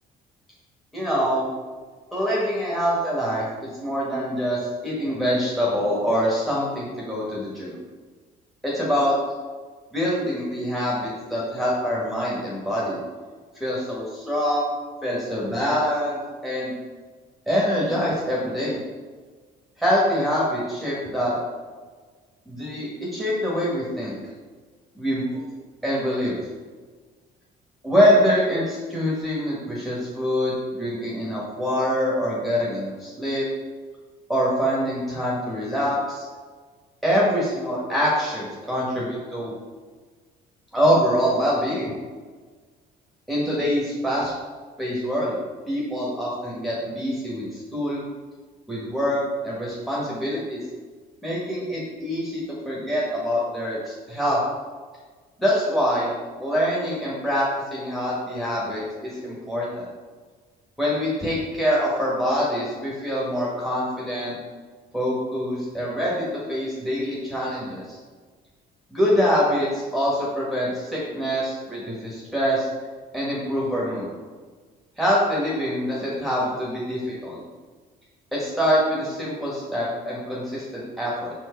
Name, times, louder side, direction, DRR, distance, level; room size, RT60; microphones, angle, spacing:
voice 1, 0.9-1.4 2.1-7.8 8.6-9.1 9.9-13.0 13.6-14.7 15.0-16.7 17.5-18.8 19.8-21.3 22.4-24.1 24.9-25.4 25.8-26.4 27.8-33.4 34.3-36.2 37.0-39.5 40.7-41.9 43.3-44.3 44.8-45.4 45.7-48.0 48.7-50.6 51.2-54.4 55.4-56.1 56.4-57.4 57.7-59.9 60.8-64.4 64.9-68.0 68.9-72.7 73.1-74.1 75.0-77.4 78.3-81.3, equal, ahead, -6 dB, 1.7 m, -25 dB
6.1 x 4.6 x 4.6 m, 1.5 s
cardioid pair, 110°, 17 cm